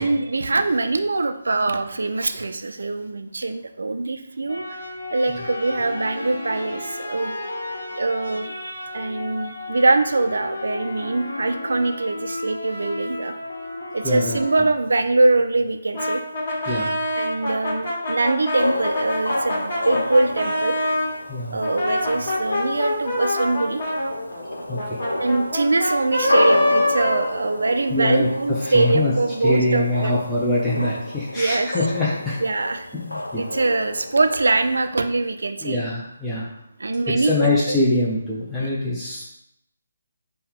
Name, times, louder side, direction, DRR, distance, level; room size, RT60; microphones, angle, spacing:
voice 1, 0.0-4.8 5.1-7.3 8.0-13.3 13.9-16.2 17.2-20.8 21.5-23.8 25.1-30.2 31.3-31.7 32.4-32.9 33.4-35.8 36.8-37.8 38.6-38.7, right 2 dB, 70° right, 8 dB, 0.4 m, -23 dB
sound 1, 4.5-14.7, left 2 dB, 70° left, 1.0 m, -33 dB
voice 2, 14.0-14.4 16.7-16.9 21.3-21.6 24.7-25.0 27.9-28.3 28.6-29.1 29.4-32.4 32.9-33.4 35.6-36.5 37.1-39.3, left 2 dB, 5° left, -9 dB, 0.6 m, -24 dB
Brass instrument, 15.9-21.1 21.6-27.9, left 1 dB, 45° left, 1.4 m, -25 dB
sound 2, 18.6-34.9, left 1 dB, 85° left, 0.5 m, -30 dB
5.4 x 2.2 x 3.6 m, 0.79 s
figure-of-eight pair, 145°, 0 cm